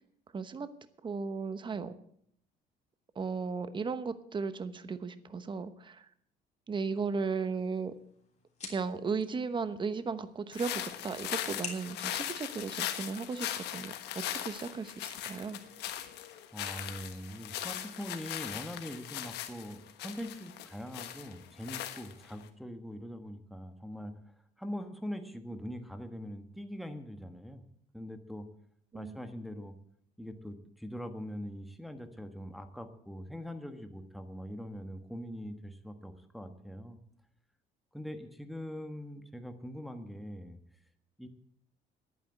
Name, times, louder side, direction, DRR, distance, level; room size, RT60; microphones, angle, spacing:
voice 1, 0.3-0.7 1.0-2.0 3.2-6.1 6.7-7.9 8.7-15.6 28.9-29.2, right 5 dB, 30° right, 12 dB, 1.0 m, -36 dB
sound 1, 7.3-13.3, left 5 dB, 40° left, 3.2 m, -50 dB
sound 2, 10.5-22.4, left 12 dB, 80° left, 1.3 m, -39 dB
voice 2, 16.5-24.2 24.6-27.6 27.9-28.5 28.9-29.7 30.2-37.0 37.9-40.6 41.2-41.3, equal, ahead, 6 dB, 1.3 m, -42 dB
10.5 x 9.4 x 8.7 m, 0.68 s
cardioid pair, 110°, 17 cm